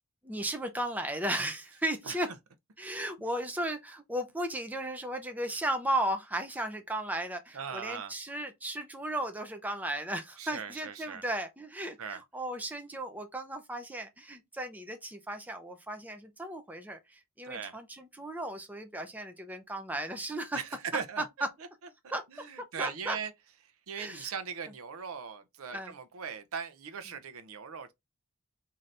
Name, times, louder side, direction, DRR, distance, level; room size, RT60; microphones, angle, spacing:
voice 1, 0.2-2.3 2.8-20.6 22.1-22.4 22.8-23.2 24.0-24.3 25.7-25.9, right 1 dB, 10° right, 0.5 m, -35 dB
voice 2, 7.5-8.1 10.4-11.2 12.0-12.2 17.4-17.8 20.5-21.5 22.0-23.3 23.9-27.9, right 6 dB, 80° right, 0.6 m, -39 dB
3.8 x 2.7 x 3.2 m
head